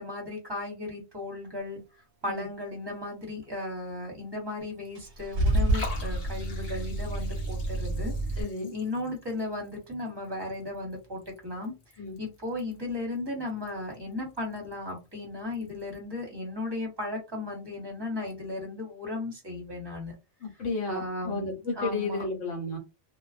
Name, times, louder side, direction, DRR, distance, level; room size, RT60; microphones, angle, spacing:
voice 1, 0.0-1.8 2.2-11.7 12.2-20.1 20.9-22.3, left 2 dB, 20° right, -1 dB, 0.9 m, -36 dB
Liquid, 4.6-16.0, left 3 dB, 40° left, 0.6 m, -49 dB
Car / Engine starting / Idling, 4.9-8.4, right 1 dB, 55° right, 0.8 m, -29 dB
voice 2, 8.4-8.7 12.0-12.2 20.4-22.8, left 3 dB, 65° left, 2 dB, 1.2 m, -32 dB
2.4 x 2.3 x 2.4 m, 0.27 s
omnidirectional pair, 1.4 m